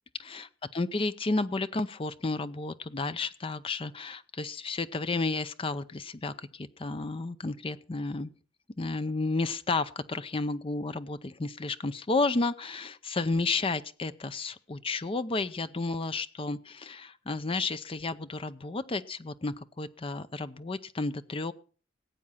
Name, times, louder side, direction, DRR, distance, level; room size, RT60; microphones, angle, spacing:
voice 1, 0.2-8.3 8.8-21.5, left 3 dB, 30° left, 13 dB, 0.6 m, -32 dB
18.0 x 8.6 x 5.6 m, 0.39 s
head